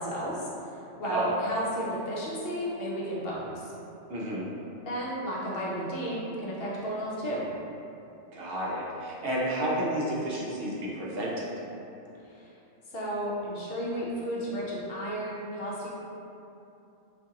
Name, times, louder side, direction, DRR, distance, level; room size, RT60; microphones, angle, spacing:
voice 1, 0.0-3.7 4.8-7.5 12.2-12.5 12.9-15.9, equal, 60° left, -5 dB, 0.8 m, -33 dB
voice 2, 4.1-4.5 8.3-11.5, right 1 dB, 60° right, -5 dB, 0.7 m, -31 dB
2.8 x 2.5 x 3.6 m, 2.8 s
omnidirectional pair, 1.2 m